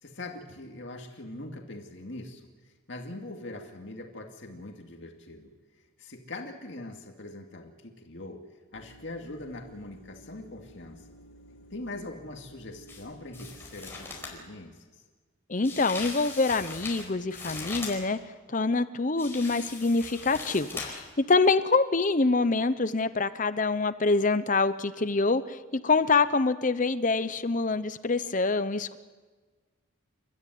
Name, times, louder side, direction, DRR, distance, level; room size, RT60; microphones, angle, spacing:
voice 1, 0.0-5.5 6.0-8.4 8.7-11.1 11.7-15.0, left 2 dB, 60° left, 2 dB, 2.3 m, -42 dB
sound 1, 8.7-14.4, right 1 dB, 85° left, 2.6 m, -54 dB
sound 2, 12.9-13.0 13.3-14.4 15.6-18.1 19.2-21.1 21.4-21.5, left 4 dB, 10° left, 4.8 m, -40 dB
voice 2, 15.5-18.2 18.5-29.0, left 3 dB, 40° left, 12 dB, 0.8 m, -25 dB
30.0 x 13.5 x 9.4 m, 1.4 s
head